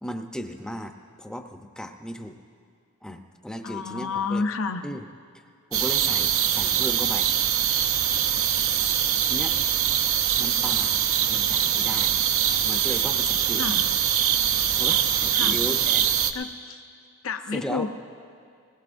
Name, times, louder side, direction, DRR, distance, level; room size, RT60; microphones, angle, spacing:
voice 1, 0.0-2.4 3.0-4.4 4.8-5.1 5.3-5.4 5.7-7.3 8.8-8.9 9.2-9.6 10.4-12.2 12.6-13.7 14.8-16.1 17.5-17.9, equal, 5° left, 5 dB, 0.7 m, -36 dB
voice 2, 3.6-4.9 13.6-13.8 15.3-15.6 16.3-16.8 17.2-17.9, left 4 dB, 70° left, 8 dB, 0.7 m, -30 dB
sound 1, 5.7-16.3, right 9 dB, 70° right, 0.7 m, -23 dB
21.0 x 19.5 x 2.6 m, 2.3 s
head